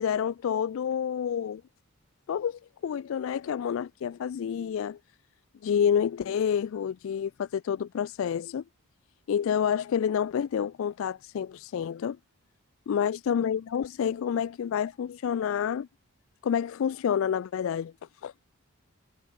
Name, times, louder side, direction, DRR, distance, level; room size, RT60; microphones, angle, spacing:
voice 1, 0.0-1.6 2.3-5.0 5.6-8.6 9.3-12.2 12.9-15.9 16.4-17.9 18.2-18.3, left 8 dB, 60° left, 0.3 m, -28 dB
head